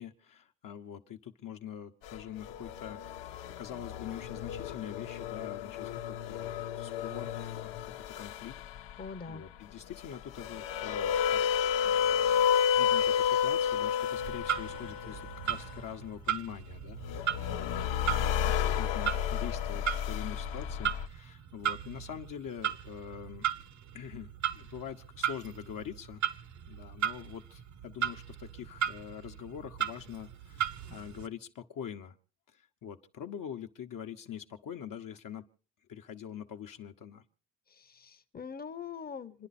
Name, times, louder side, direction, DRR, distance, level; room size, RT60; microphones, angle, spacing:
voice 1, 0.0-8.6 8.9-23.5 23.9-26.2 26.7-32.2 32.5-35.4 35.9-37.2, left 9 dB, 50° left, 4 dB, 1.0 m, -44 dB
sound 1, 2.1-9.1 10.0-15.8 17.0-21.0, left 8 dB, 80° left, 1.0 m, -31 dB
voice 2, 9.0-9.4 37.7-39.5, left 6 dB, 20° left, 10 dB, 0.9 m, -43 dB
Clock, 14.1-31.3, right 10 dB, 40° right, 0.8 m, -37 dB
27.5 x 11.0 x 4.2 m, 0.40 s
cardioid pair, 155°, 44 cm